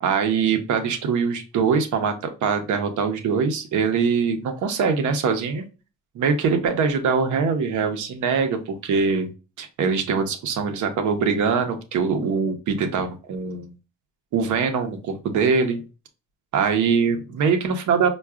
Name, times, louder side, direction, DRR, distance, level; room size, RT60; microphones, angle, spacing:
voice 1, 0.0-5.6 6.1-9.3 9.6-13.7 14.3-15.8 16.5-18.1, right 5 dB, 75° right, 6 dB, 0.7 m, -23 dB
4.5 x 2.3 x 2.3 m, 0.32 s
cardioid pair, 90°, 30 cm